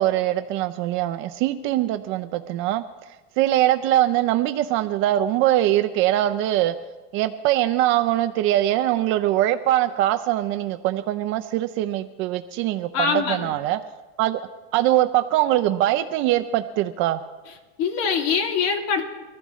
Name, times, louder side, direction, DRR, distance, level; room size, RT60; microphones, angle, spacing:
voice 1, 0.0-6.7 7.1-13.8 14.2-14.4 14.7-17.2, right 13 dB, 35° right, 9 dB, 0.5 m, -22 dB
voice 2, 12.9-13.5 17.8-19.1, left 6 dB, 45° left, 3 dB, 2.6 m, -23 dB
24.0 x 14.5 x 3.1 m, 1.2 s
supercardioid pair, 150°, 37 cm